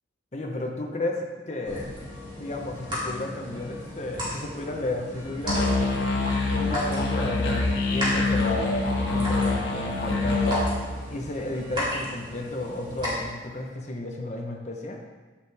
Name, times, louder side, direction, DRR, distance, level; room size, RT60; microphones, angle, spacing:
voice 1, 0.3-1.9 2.4-6.1 6.6-10.4 11.1-15.0, left 2 dB, 35° left, 1 dB, 1.1 m, -33 dB
sound 1, 1.6-13.2, left 1 dB, 25° right, 3.1 m, -35 dB
sound 2, 5.5-10.7, left 3 dB, 75° left, 1.7 m, -25 dB
10.5 x 7.2 x 3.6 m, 1.3 s
head